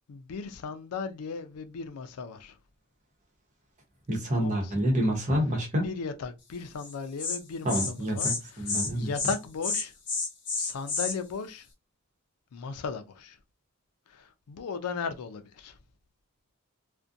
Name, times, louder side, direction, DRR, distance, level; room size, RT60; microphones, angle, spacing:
voice 1, 0.1-2.6 4.3-4.7 5.8-9.9 10.6-11.7 12.5-13.4 14.1-15.8, left 5 dB, 90° left, 0.4 m, -36 dB
voice 2, 4.1-5.9 7.6-9.1, equal, 35° right, 0.8 m, -28 dB
Insect, 6.8-6.9 7.2-7.4 7.7-7.9 8.2-8.4 8.6-8.9 9.1-9.4 9.6-11.1, left 4 dB, 55° left, 0.9 m, -30 dB
2.4 x 2.1 x 2.5 m
head